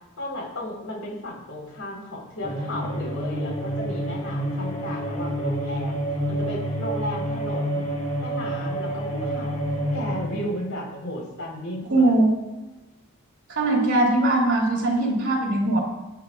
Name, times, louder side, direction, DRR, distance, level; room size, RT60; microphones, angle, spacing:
voice 1, 0.2-6.0 6.3-7.8 8.2-9.6 9.9-12.1, left 1 dB, 65° left, -2 dB, 4.8 m, -34 dB
horn-like vocal drone with thumps, 2.4-10.6, right 1 dB, 35° left, 2.2 m, -28 dB
voice 2, 11.9-12.6 13.5-15.8, right 2 dB, 50° right, -1 dB, 3.4 m, -21 dB
19.5 x 10.5 x 2.6 m, 1.1 s
head